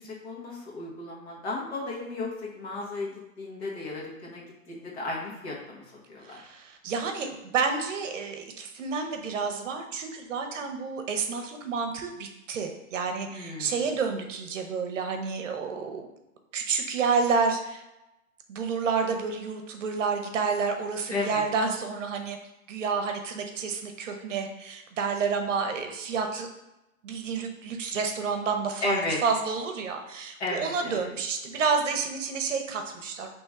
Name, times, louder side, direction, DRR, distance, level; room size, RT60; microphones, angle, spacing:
voice 1, 0.0-6.4 13.3-13.9 21.1-21.4 28.8-29.2 30.4-31.1, left 2 dB, 50° left, -3 dB, 1.4 m, -34 dB
voice 2, 6.3-16.1 16.5-17.8 18.5-22.4 22.7-26.5 27.0-33.3, right 5 dB, 60° right, 5 dB, 0.8 m, -29 dB
4.3 x 3.0 x 3.6 m, 0.93 s
hypercardioid pair, 165°, 43 cm